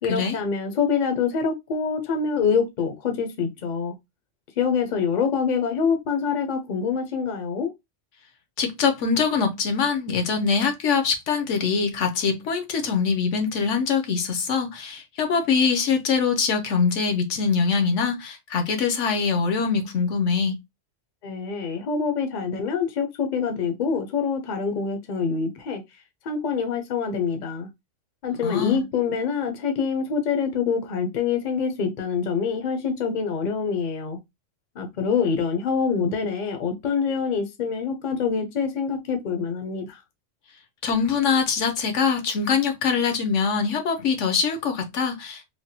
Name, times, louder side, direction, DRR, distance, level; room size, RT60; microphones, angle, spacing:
voice 1, 0.0-4.0 4.6-7.7 21.2-25.8 26.2-27.7 28.2-34.2 34.8-40.0, left 6 dB, 50° left, 0.6 m, -25 dB
voice 2, 8.6-20.6 28.4-28.8 40.8-45.5, left 5 dB, 75° left, 1.0 m, -23 dB
3.3 x 2.2 x 2.6 m
omnidirectional pair, 1.3 m